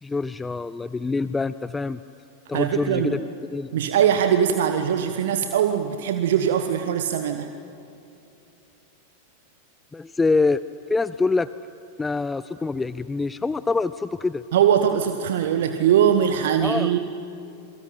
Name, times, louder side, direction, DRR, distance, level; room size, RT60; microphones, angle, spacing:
voice 1, 0.0-2.0 2.5-3.2 3.5-3.7 9.9-10.6 10.9-11.5 12.0-14.4 16.6-16.9, left 3 dB, 10° left, 15 dB, 0.5 m, -25 dB
voice 2, 2.5-3.2 3.7-7.5 14.5-17.0, right 9 dB, 55° right, 8 dB, 1.3 m, -21 dB
27.5 x 24.0 x 8.7 m, 2.8 s
figure-of-eight pair, 90°, 0 cm